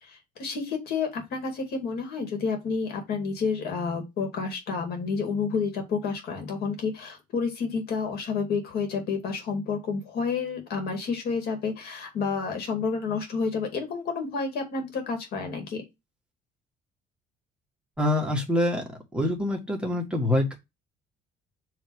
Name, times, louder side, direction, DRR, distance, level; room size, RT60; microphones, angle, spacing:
voice 1, 0.0-15.8, left 5 dB, 70° left, 4 dB, 2.2 m, -30 dB
voice 2, 18.0-18.8 19.1-20.5, left 1 dB, 5° right, 0 dB, 1.6 m, -25 dB
6.3 x 3.3 x 4.7 m, 0.22 s
cardioid pair, 110°, 17 cm